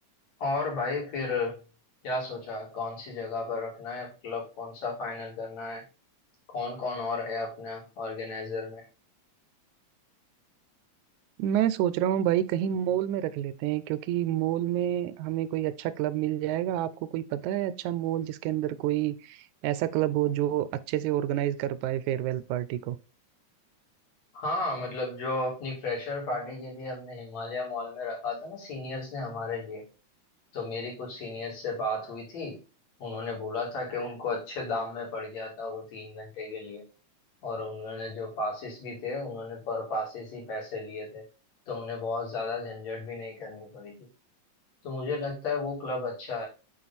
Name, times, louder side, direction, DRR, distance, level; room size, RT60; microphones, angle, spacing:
voice 1, 0.4-1.6 2.0-5.8 6.5-8.9 24.3-29.9 30.5-32.6 33.0-36.9 37.4-41.2 41.7-44.1 44.8-46.5, left 3 dB, 65° left, 3.9 m, -34 dB
voice 2, 11.4-23.0, right 12 dB, 90° right, 2.0 m, -28 dB
7.6 x 4.5 x 4.1 m
omnidirectional pair, 3.3 m